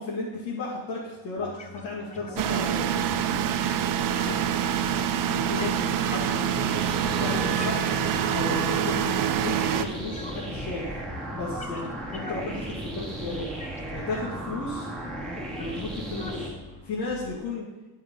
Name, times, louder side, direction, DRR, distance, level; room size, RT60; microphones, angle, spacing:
voice 1, 0.0-2.9 4.0-4.4 5.2-6.8 7.2-7.9 8.3-10.9 11.3-13.5 13.9-14.9 15.6-16.5 16.8-17.7, left 3 dB, 75° left, -6 dB, 2.4 m, -34 dB
sound 1, 1.4-17.4, left 3 dB, 20° left, 0.7 m, -44 dB
sound 2, 2.4-9.8, right 9 dB, 55° right, 0.7 m, -26 dB
sound 3, 6.7-16.5, right 1 dB, 5° left, 2.5 m, -36 dB
11.5 x 5.4 x 5.5 m, 1.1 s
cardioid pair, 135°, 40 cm